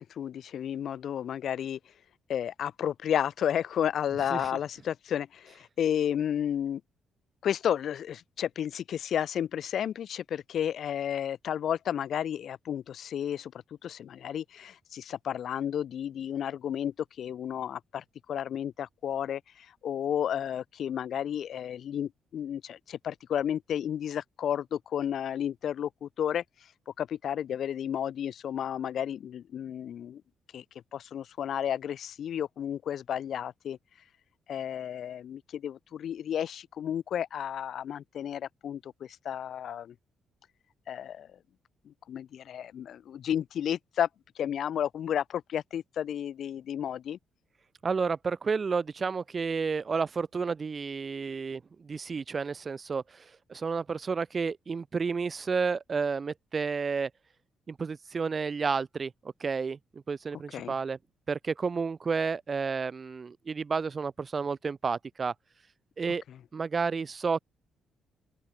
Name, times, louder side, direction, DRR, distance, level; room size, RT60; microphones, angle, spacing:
voice 1, 0.1-1.8 2.3-6.8 7.4-13.5 13.8-26.4 26.9-30.2 30.5-30.6 30.9-33.8 34.5-39.9 40.9-41.3 41.8-44.1 44.4-47.2 60.5-60.7, left 9 dB, 55° left, 1.0 m, -32 dB
voice 2, 47.8-57.1 57.7-59.1 59.4-61.0 61.3-65.3 66.0-66.2 66.5-67.4, right 5 dB, 35° right, 0.9 m, -31 dB
open air
figure-of-eight pair, 40°, 0 cm